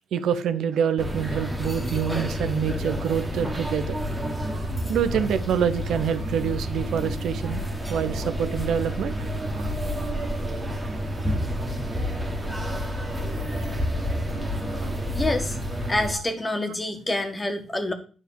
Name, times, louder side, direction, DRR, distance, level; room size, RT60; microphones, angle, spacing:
voice 1, 0.1-4.0 4.9-7.6 7.9-9.2 9.6-9.7 16.1-16.2, right 8 dB, 70° right, 0.8 m, -26 dB
sound 1, 1.0-16.1, equal, ahead, 1.7 m, -29 dB
sound 2, 4.3-15.1, right 4 dB, 50° right, 2.1 m, -42 dB
voice 2, 15.1-15.6 15.9-17.9, left 2 dB, 15° left, 1.5 m, -27 dB
9.8 x 3.6 x 7.2 m
cardioid pair, 90°, 0 cm